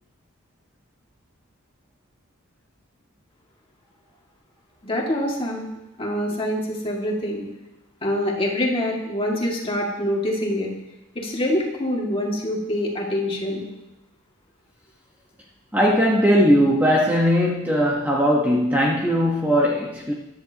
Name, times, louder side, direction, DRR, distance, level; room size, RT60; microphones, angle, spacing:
voice 1, 4.8-5.7 6.0-7.4 8.0-10.7 11.2-13.7, left 1 dB, 25° left, 2.1 m, -25 dB
voice 2, 15.7-20.1, equal, 10° right, 1.1 m, -19 dB
14.0 x 11.0 x 2.9 m
head